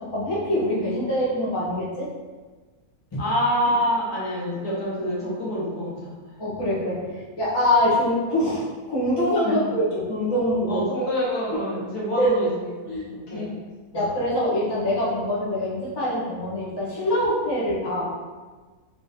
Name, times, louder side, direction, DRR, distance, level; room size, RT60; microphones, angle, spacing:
voice 1, 0.0-2.1 3.1-3.2 6.4-7.1 7.4-10.9 12.2-12.3 12.9-13.0 13.3-13.5 13.9-18.1, left 1 dB, 20° left, -8 dB, 0.8 m, -24 dB
voice 2, 3.2-6.1 9.4-9.7 10.7-12.5 12.8-13.5 13.9-14.1, equal, 85° left, -6 dB, 1.6 m, -26 dB
3.6 x 3.3 x 2.7 m, 1.4 s
omnidirectional pair, 1.6 m